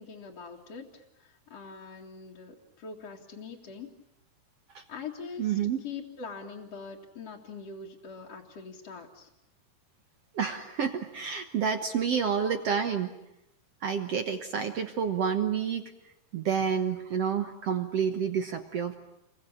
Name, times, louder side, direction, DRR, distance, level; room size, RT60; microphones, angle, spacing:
voice 1, 0.0-3.9 4.9-9.3, left 5 dB, 45° left, -4 dB, 2.8 m, -43 dB
voice 2, 5.4-5.8 10.3-13.1 13.8-15.8 16.3-18.9, right 7 dB, 70° right, 7 dB, 1.4 m, -29 dB
29.5 x 23.5 x 8.6 m, 0.86 s
omnidirectional pair, 4.7 m